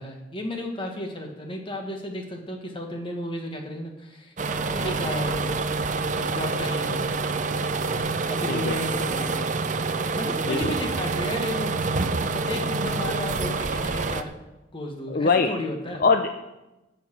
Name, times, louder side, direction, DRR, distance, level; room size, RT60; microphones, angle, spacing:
voice 1, 0.0-4.3 4.7-5.4 6.2-7.1 8.3-9.5 10.1-11.8 12.3-14.3 14.7-16.0, left 1 dB, 25° left, 2 dB, 1.6 m, -33 dB
sound 1, 4.4-14.2, right 3 dB, 40° right, 0.6 m, -27 dB
voice 2, 15.1-15.5 16.0-16.4, left 4 dB, 50° left, 7 dB, 0.5 m, -22 dB
15.0 x 5.7 x 6.1 m, 1.0 s
head